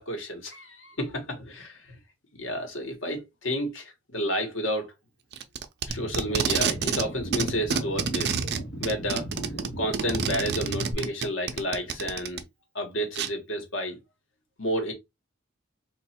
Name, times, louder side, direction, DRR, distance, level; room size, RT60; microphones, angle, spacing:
voice 1, 0.0-2.0 2.3-4.9 5.9-8.4 8.8-9.3 9.8-12.4 12.7-14.0 14.6-14.9, equal, 80° left, 1.3 m, -31 dB
Packing tape duct tape, 5.3-7.1 7.3-12.4 13.2-13.3, right 6 dB, 55° right, 0.5 m, -28 dB
sound 1, 5.9-10.9, right 1 dB, 60° left, 1.4 m, -37 dB
3.0 x 2.5 x 4.3 m
head